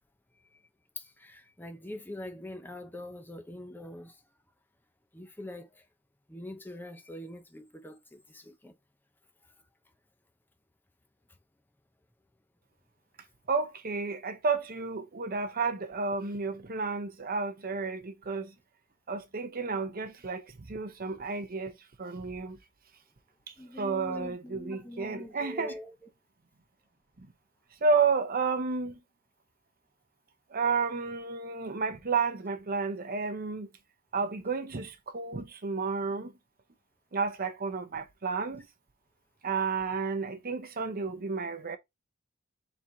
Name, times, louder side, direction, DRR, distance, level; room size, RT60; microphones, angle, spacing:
voice 1, 1.0-4.2 5.1-5.8 6.3-8.7 23.6-25.9, left 1 dB, 10° left, 0.7 m, -43 dB
voice 2, 13.5-18.5 19.1-21.7 22.0-22.6 23.5-25.8 27.8-29.0 30.5-33.7 34.1-36.3 37.1-38.7 39.4-41.8, right 4 dB, 45° right, 0.8 m, -31 dB
4.4 x 3.8 x 2.8 m
head